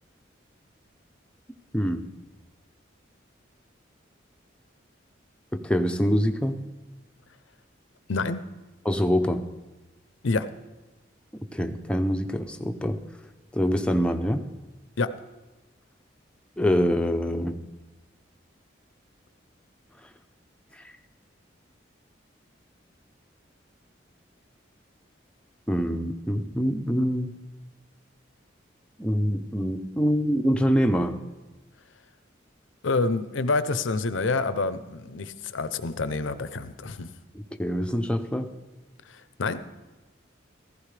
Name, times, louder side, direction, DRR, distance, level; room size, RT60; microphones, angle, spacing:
voice 1, 5.5-6.6 8.9-9.4 11.5-13.0 13.5-14.5 16.6-17.6 25.7-27.3 29.0-31.2 37.3-38.5, equal, 5° left, 6 dB, 0.6 m, -25 dB
voice 2, 8.1-8.4 10.2-10.5 15.0-15.2 32.8-37.1 39.1-39.6, left 3 dB, 85° left, 13 dB, 0.7 m, -27 dB
15.0 x 14.5 x 3.4 m, 1.1 s
head